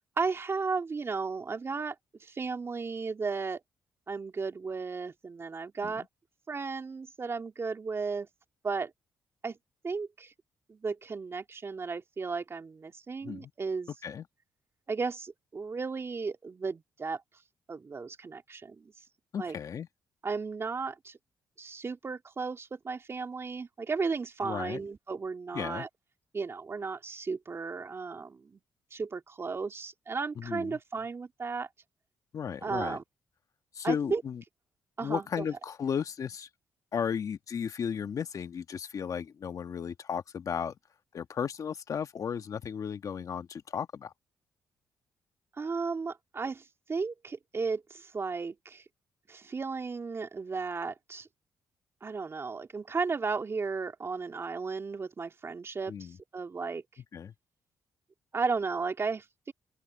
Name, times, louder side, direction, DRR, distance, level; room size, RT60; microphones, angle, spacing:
voice 1, 0.2-1.9 2.2-3.6 4.1-6.0 6.5-8.3 8.6-8.9 9.4-9.6 9.8-10.3 10.7-13.9 14.9-17.2 17.7-18.9 19.4-19.6 20.2-21.2 21.6-25.9 26.3-28.6 28.9-31.7 32.6-33.0 33.8-34.2 35.0-35.5 45.6-46.6 46.9-48.8 49.3-51.3 52.0-55.9 56.3-56.8 58.3-59.5, right 4 dB, 40° right, 3.1 m, -34 dB
voice 2, 19.3-19.9 24.4-24.8 25.5-25.9 30.4-30.8 32.3-33.0 33.7-34.4 35.0-36.5 36.9-40.7 41.1-44.1 55.9-56.2 57.1-57.3, left 7 dB, 55° left, 1.5 m, -34 dB
open air
cardioid pair, 70°, 7 cm